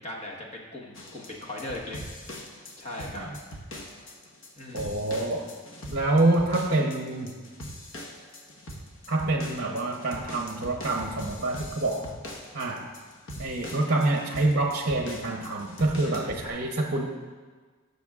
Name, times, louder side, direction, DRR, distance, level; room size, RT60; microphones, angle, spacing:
voice 1, 0.0-2.0 2.8-3.3 4.5-4.9 16.0-16.3, left 1 dB, 30° left, -2 dB, 1.3 m, -38 dB
sound 1, 0.9-16.5, equal, 60° left, 1.2 m, -42 dB
voice 2, 4.7-5.4 5.9-7.4 9.1-12.1 12.5-12.9 13.4-17.1, right 2 dB, 45° right, 1 dB, 0.8 m, -26 dB
19.0 x 6.8 x 2.4 m, 1.5 s
head